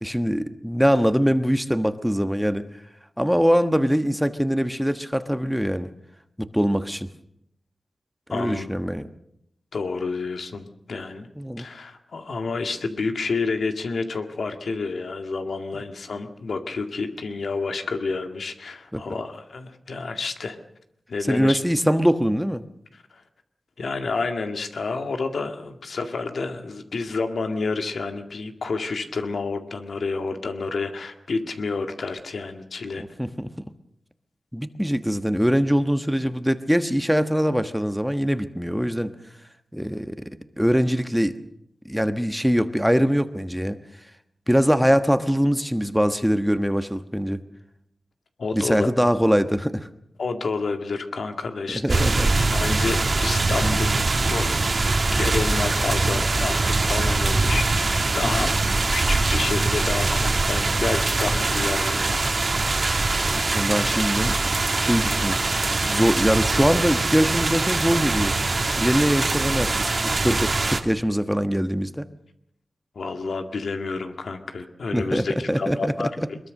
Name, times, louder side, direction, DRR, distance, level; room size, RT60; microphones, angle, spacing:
voice 1, 0.0-2.6 3.2-5.9 6.4-7.1 8.3-9.1 11.4-11.7 18.9-19.0 21.2-22.6 33.0-33.6 34.5-39.1 39.7-41.4 41.8-43.8 44.5-47.4 48.5-49.9 51.7-52.3 58.2-58.5 63.2-64.3 64.7-65.5 65.9-68.3 68.8-72.0 74.9-76.3, equal, ahead, 9 dB, 1.3 m, -23 dB
voice 2, 8.3-8.7 9.7-11.3 11.6-20.6 21.1-21.6 23.1-23.2 23.8-33.0 48.4-48.9 50.2-52.1 52.5-54.0 54.3-54.6 55.1-58.5 58.9-62.2 73.0-76.4, left 4 dB, 80° left, 6 dB, 2.1 m, -29 dB
sound 1, 51.9-70.8, right 3 dB, 50° right, 1.9 m, -23 dB
22.5 x 21.5 x 6.5 m, 0.75 s
wide cardioid pair, 70°, 0 cm